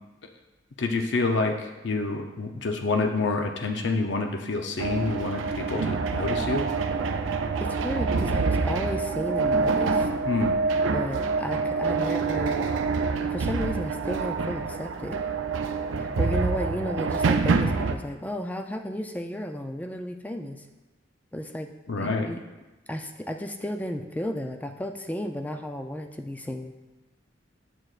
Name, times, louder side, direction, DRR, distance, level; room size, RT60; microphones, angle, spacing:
voice 1, 0.8-6.7 10.2-10.5 21.9-22.3, left 3 dB, 65° left, 4 dB, 0.6 m, -27 dB
sound 1, 4.8-18.0, right 4 dB, 90° right, 0.5 m, -26 dB
voice 2, 7.6-10.1 10.9-12.7 13.3-15.2 16.0-20.6 21.3-21.7 22.0-22.4 22.9-26.7, equal, 10° left, 5 dB, 0.4 m, -33 dB
8.6 x 7.7 x 2.4 m, 1.1 s
head